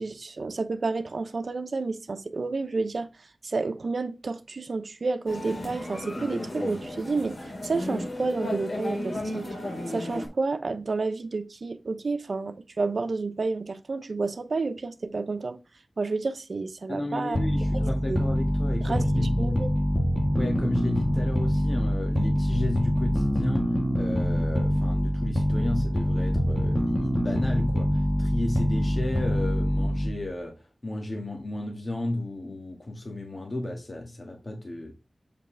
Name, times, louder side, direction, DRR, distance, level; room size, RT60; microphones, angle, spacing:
voice 1, 0.0-3.1 3.4-9.5 9.9-15.6 16.0-17.4 17.7-18.2 18.8-19.7, right 3 dB, 80° right, 0.8 m, -30 dB
sound 1, 5.3-10.3, left 1 dB, 60° left, 3.3 m, -34 dB
voice 2, 16.9-19.7 20.3-34.9, left 1 dB, 45° left, 2.0 m, -33 dB
sound 2, 17.3-30.3, equal, ahead, 1.6 m, -25 dB
8.3 x 5.0 x 3.4 m
wide cardioid pair, 75°, 0 cm